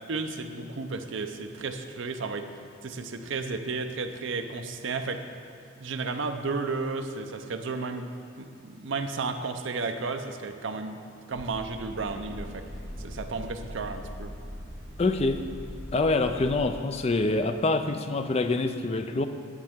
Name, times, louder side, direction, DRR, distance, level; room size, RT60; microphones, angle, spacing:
voice 1, 0.0-2.5 2.8-5.2 5.8-8.1 8.4-11.0 11.3-12.6 13.0-14.3, right 4 dB, 60° right, 7 dB, 0.6 m, -33 dB
sound 1, 11.3-16.7, equal, 45° right, 2.5 m, -41 dB
voice 2, 15.0-15.5 15.9-19.3, left 2 dB, 30° left, 8 dB, 0.4 m, -26 dB
10.5 x 8.6 x 3.6 m, 2.4 s
head